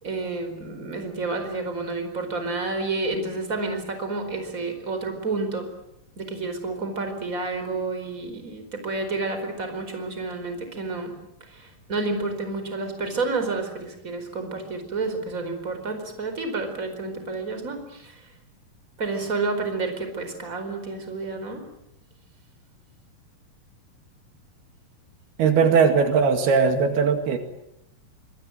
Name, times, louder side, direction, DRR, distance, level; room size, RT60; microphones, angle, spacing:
voice 1, 0.0-5.7 6.2-11.1 11.4-18.3 19.0-21.6, right 3 dB, 20° right, 6 dB, 4.7 m, -30 dB
voice 2, 25.4-27.4, right 5 dB, 80° right, 7 dB, 4.2 m, -19 dB
25.5 x 22.5 x 9.1 m, 0.79 s
omnidirectional pair, 4.4 m